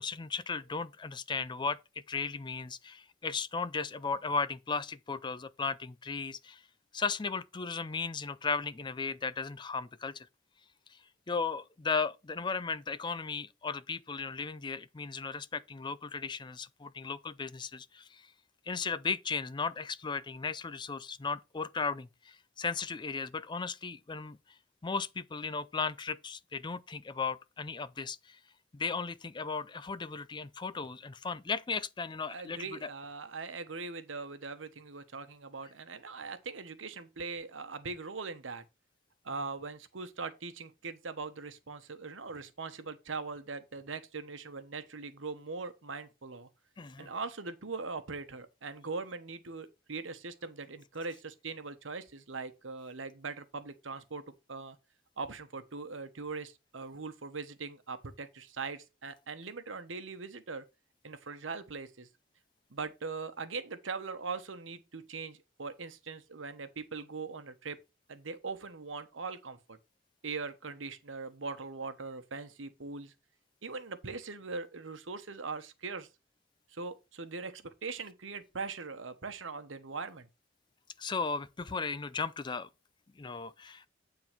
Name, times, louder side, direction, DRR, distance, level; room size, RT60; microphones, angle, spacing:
voice 1, 0.0-1.8 2.1-6.6 6.9-10.3 11.3-18.3 18.7-24.4 24.8-28.4 28.7-32.9 46.8-47.1 81.0-82.7 83.2-83.9, left 5 dB, 25° left, 0.4 m, -36 dB
voice 2, 32.3-38.6 39.2-46.5 47.0-54.8 55.2-60.7 61.0-62.1 62.7-67.8 68.1-69.8 70.2-73.1 73.6-76.1 76.7-80.3, right 4 dB, 90° right, 1.1 m, -41 dB
9.0 x 3.9 x 6.0 m
head